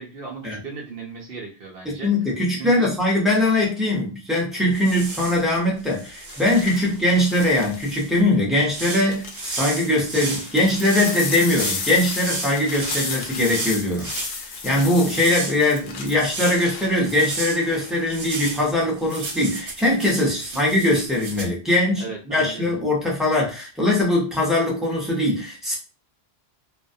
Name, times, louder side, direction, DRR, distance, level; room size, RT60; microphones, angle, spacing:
voice 1, 0.0-2.3 2.6-2.9 20.5-20.6 22.0-22.7, right 4 dB, 65° right, 0.7 m, -36 dB
voice 2, 1.9-14.1 14.4-25.8, left 1 dB, ahead, 0.6 m, -21 dB
sound 1, 4.6-5.0 6.3-8.2 8.8-18.0 18.4-18.9, left 4 dB, 70° left, 0.8 m, -34 dB
sound 2, 4.7-5.4 5.9-7.0 7.8-8.1 8.7-14.3 14.9-16.7 17.0-17.6 18.1-21.4, right 2 dB, 80° right, 1.1 m, -33 dB
2.3 x 2.1 x 2.6 m
omnidirectional pair, 1.1 m